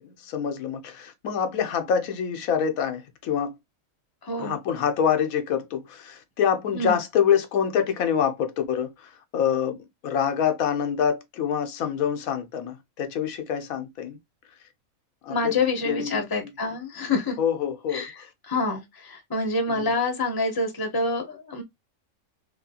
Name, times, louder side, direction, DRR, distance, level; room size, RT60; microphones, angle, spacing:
voice 1, 0.0-3.5 4.4-9.8 10.0-14.2 15.2-15.6 15.8-16.5 17.4-18.3 19.7-19.9, left 8 dB, 80° left, 1.1 m, -26 dB
voice 2, 4.2-4.6 6.7-7.0 15.3-17.4 17.9-18.1 18.4-21.6, left 3 dB, 20° left, 0.8 m, -27 dB
3.1 x 2.8 x 2.7 m
omnidirectional pair, 1.5 m